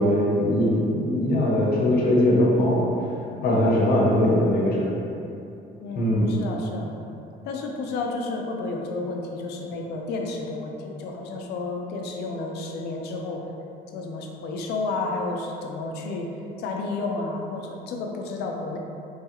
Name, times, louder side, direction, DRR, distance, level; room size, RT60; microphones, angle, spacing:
voice 1, 0.0-2.9 3.4-4.9 5.9-6.4, left 1 dB, 60° left, -4 dB, 0.7 m, -21 dB
voice 2, 4.0-4.4 5.8-7.0 7.4-13.4 13.9-16.3 16.6-18.8, left 3 dB, 80° left, 1 dB, 0.4 m, -31 dB
3.1 x 2.3 x 2.8 m, 2.8 s
cardioid pair, 110°, 17 cm